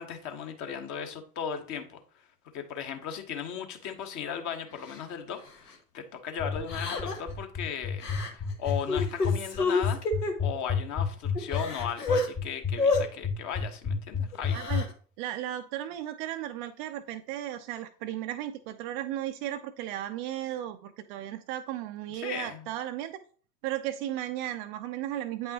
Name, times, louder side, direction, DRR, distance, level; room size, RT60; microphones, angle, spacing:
voice 1, 0.0-2.2 2.5-10.0 10.4-14.6 22.1-22.7, left 7 dB, 40° left, 6 dB, 1.1 m, -37 dB
Crying sobbing, 4.9-5.0 5.5-5.7 6.7-7.3 8.0-8.3 8.7-10.3 10.9-11.0 11.3-12.3 12.8-13.0 14.3-14.9, left 3 dB, 85° left, 1.2 m, -29 dB
sound 1, 6.4-14.8, left 7 dB, 20° left, 0.9 m, -29 dB
voice 2, 14.5-14.9 15.2-23.2 23.6-25.5, right 12 dB, 35° right, 9 dB, 0.4 m, -35 dB
8.7 x 5.4 x 2.9 m, 0.43 s
figure-of-eight pair, 80°, 47 cm